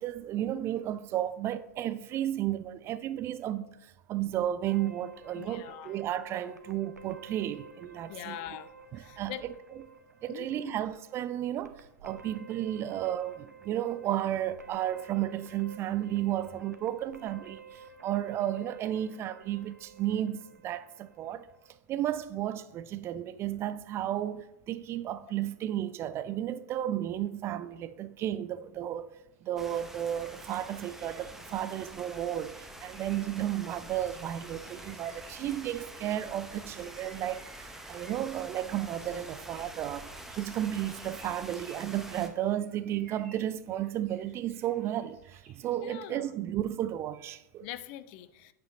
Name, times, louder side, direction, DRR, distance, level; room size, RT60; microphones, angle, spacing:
voice 1, 0.0-8.6 8.9-9.5 10.2-21.5 21.9-29.1 29.4-40.1 40.4-47.7, right 12 dB, 30° right, 0.4 m, -33 dB
sound 1, 4.7-21.8, right 4 dB, 80° right, 0.9 m, -52 dB
voice 2, 5.3-6.0 8.1-8.7 9.0-9.4 10.3-10.8 45.8-46.3 47.6-48.5, left 13 dB, 40° left, 0.5 m, -42 dB
sound 2, 29.3-45.8, right 4 dB, 55° right, 2.3 m, -59 dB
sound 3, 29.6-42.3, right 1 dB, 5° right, 0.9 m, -46 dB
8.7 x 7.9 x 3.9 m
figure-of-eight pair, 90°, 9 cm